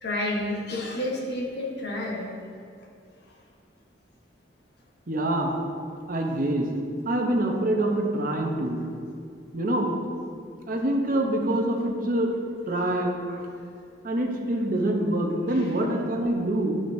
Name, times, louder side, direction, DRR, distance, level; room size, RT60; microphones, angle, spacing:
voice 1, 0.0-2.3 15.5-15.7, left 1 dB, 60° left, -3 dB, 1.2 m, -30 dB
voice 2, 5.1-5.5 6.1-6.7 7.0-8.8 9.5-9.9 10.7-12.3 12.7-13.4 14.0-16.7, right 1 dB, 50° right, 1 dB, 0.8 m, -25 dB
10.0 x 4.9 x 2.7 m, 2.3 s
head